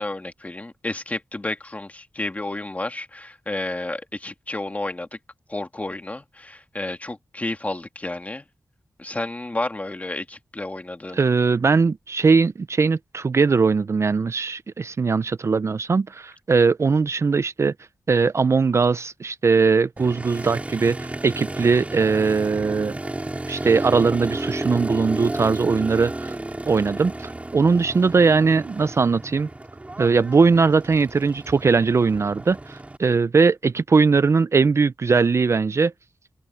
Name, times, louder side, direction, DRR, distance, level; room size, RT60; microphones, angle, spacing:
voice 1, 0.0-5.1 5.5-8.4 9.0-11.2, left 2 dB, 20° left, 1.7 m, -31 dB
voice 2, 11.1-17.7 18.1-23.0 23.5-26.4 26.7-29.5 30.0-35.9, right 4 dB, 45° right, 0.4 m, -20 dB
Motorcycle, 20.0-33.0, right 2 dB, 20° right, 4.8 m, -32 dB
wide cardioid pair, 115°, 7 cm